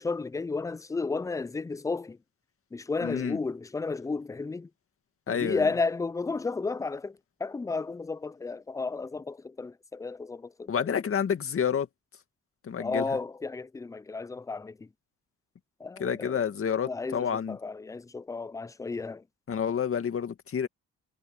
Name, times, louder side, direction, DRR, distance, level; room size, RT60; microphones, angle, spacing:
voice 1, 0.0-2.2 2.7-4.7 5.3-11.0 12.8-14.9 15.8-16.4 16.8-17.2 17.5-19.2, left 4 dB, 10° left, 0.4 m, -33 dB
voice 2, 3.0-3.4 5.3-5.7 10.7-11.9 12.6-13.2 16.0-17.6 19.5-20.7, left 7 dB, 45° left, 2.1 m, -29 dB
cardioid pair, 90°, 30 cm